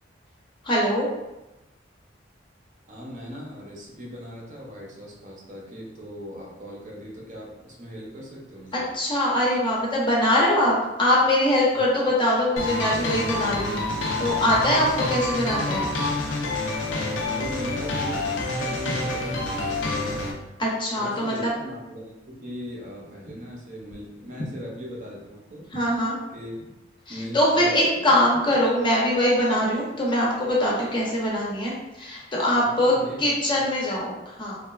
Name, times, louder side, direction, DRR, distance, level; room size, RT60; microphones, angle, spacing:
voice 1, 0.6-1.1 8.7-13.8 14.2-15.9 20.6-21.5 25.7-26.2 27.1-34.6, left 1 dB, 25° left, -5 dB, 0.6 m, -22 dB
voice 2, 2.9-8.9 17.2-18.3 18.6-20.4 20.9-25.7 26.3-26.6 27.1-28.1 28.5-28.6 32.6-33.3, equal, 40° right, -3 dB, 0.6 m, -39 dB
sound 1, 12.6-20.3, left 2 dB, 70° left, 0.4 m, -27 dB
2.9 x 2.2 x 2.3 m, 0.99 s
head